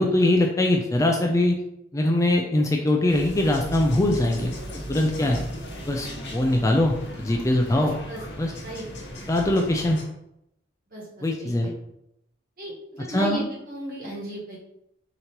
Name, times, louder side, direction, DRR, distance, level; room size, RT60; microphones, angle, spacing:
voice 1, 0.0-1.6 1.9-4.5 4.9-5.4 5.9-7.9 8.4-8.5 9.3-10.0 11.2-11.7 13.1-13.4, left 1 dB, 15° left, 1 dB, 0.3 m, -22 dB
sound 1, 3.1-10.0, equal, 60° left, 1.0 m, -37 dB
voice 2, 7.8-8.2 8.6-8.9 10.9-11.5 12.6-14.6, right 2 dB, 50° right, -5 dB, 1.4 m, -35 dB
5.0 x 2.8 x 2.9 m, 0.80 s
head